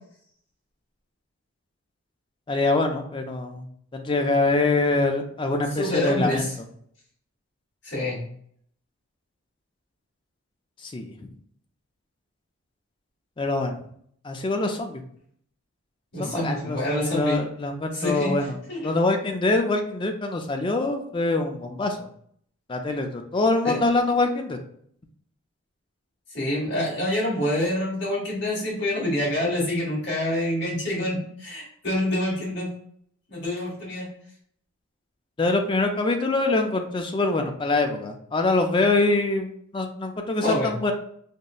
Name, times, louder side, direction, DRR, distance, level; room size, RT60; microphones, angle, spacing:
voice 1, 2.5-3.7 3.9-6.5 10.8-11.3 13.4-13.8 14.2-15.0 16.2-18.6 18.8-22.1 22.7-24.6 35.4-40.9, left 2 dB, 20° left, 4 dB, 0.3 m, -24 dB
voice 2, 5.8-6.5 7.8-8.2 16.1-17.4 17.9-18.3 18.7-18.9 23.6-23.8 26.3-32.7 33.3-34.1 40.4-40.7, left 1 dB, 50° left, -5 dB, 1.4 m, -26 dB
5.2 x 2.0 x 2.3 m, 0.64 s
head